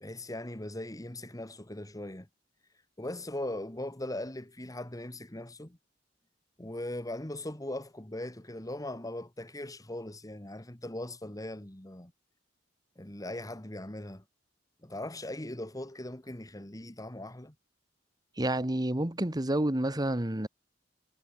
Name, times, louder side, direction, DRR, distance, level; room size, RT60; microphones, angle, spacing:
voice 1, 0.0-2.3 3.0-5.8 6.6-12.1 13.0-14.2 14.8-17.5, left 1 dB, 20° left, 1.9 m, -39 dB
voice 2, 18.4-20.5, right 1 dB, 20° right, 1.3 m, -29 dB
head